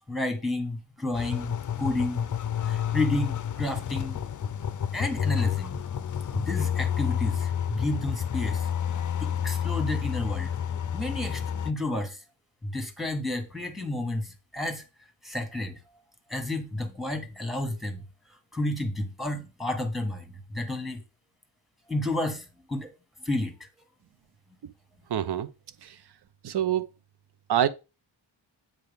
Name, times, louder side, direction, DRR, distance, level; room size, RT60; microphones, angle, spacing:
voice 1, 0.1-2.3 2.6-4.2 4.9-5.8 6.3-8.7 9.2-10.6 10.9-12.2 12.6-14.8 15.2-15.8 16.3-18.0 18.5-21.0 21.9-22.9 23.2-23.7, left 1 dB, ahead, 1.4 m, -31 dB
sound 1, 1.1-11.7, left 8 dB, 40° left, 0.5 m, -29 dB
voice 2, 25.1-25.5 26.4-26.9 27.5-27.7, right 10 dB, 55° right, 0.8 m, -25 dB
7.8 x 4.6 x 3.5 m
cardioid pair, 90°, 47 cm